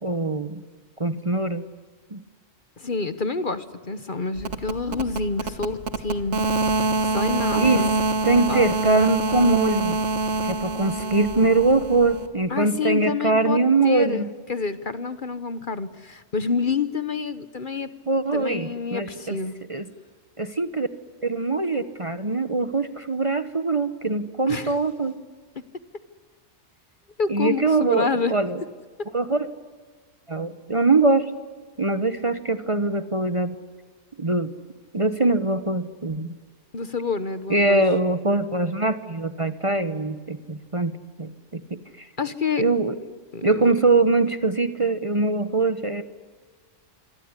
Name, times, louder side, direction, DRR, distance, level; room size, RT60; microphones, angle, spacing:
voice 1, 0.0-0.6 1.0-1.6 2.1-2.2 7.5-7.9 8.2-10.0 10.4-14.3 18.1-19.4 19.7-19.9 20.4-20.9 21.2-25.1 27.3-28.6 29.1-29.5 30.3-31.3 31.8-33.5 34.2-34.5 34.9-36.3 37.5-40.9 41.2-42.1 42.6-43.0 43.4-46.0, right 3 dB, 25° right, 12 dB, 1.0 m, -22 dB
voice 2, 2.8-6.5 7.0-8.0 8.5-8.7 12.5-17.9 18.3-19.5 24.5-24.8 27.2-28.3 36.7-37.8 42.2-42.6 43.3-43.6, left 4 dB, 40° left, 13 dB, 1.1 m, -28 dB
sound 1, 4.4-12.3, right 2 dB, 65° right, 1.9 m, -26 dB
27.0 x 23.0 x 9.7 m, 1.5 s
omnidirectional pair, 1.3 m